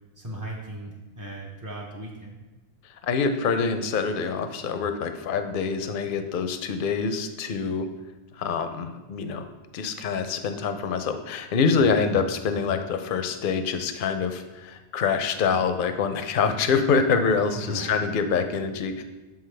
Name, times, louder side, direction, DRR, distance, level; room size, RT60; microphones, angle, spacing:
voice 1, 0.2-2.4 17.6-18.1, right 1 dB, 20° right, -4 dB, 0.6 m, -37 dB
voice 2, 3.0-7.9 8.3-9.4 9.7-19.0, left 5 dB, 60° left, 8 dB, 0.7 m, -25 dB
7.0 x 5.8 x 3.3 m, 1.1 s
omnidirectional pair, 1.1 m